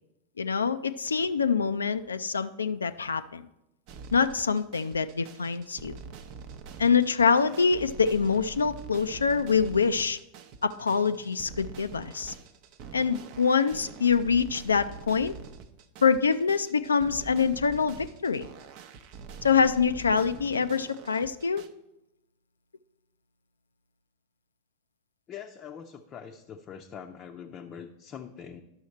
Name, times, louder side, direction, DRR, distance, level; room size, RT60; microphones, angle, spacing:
voice 1, 0.4-3.5 4.1-6.0 6.8-10.2 10.6-12.3 12.9-15.3 16.0-18.5 19.4-21.6, left 5 dB, 75° left, 11 dB, 0.4 m, -25 dB
sound 1, 3.9-21.7, right 5 dB, 45° right, 0.7 m, -45 dB
voice 2, 25.3-28.6, left 7 dB, 30° left, 2 dB, 0.6 m, -43 dB
11.5 x 6.3 x 4.3 m, 0.88 s
figure-of-eight pair, 90°, 0 cm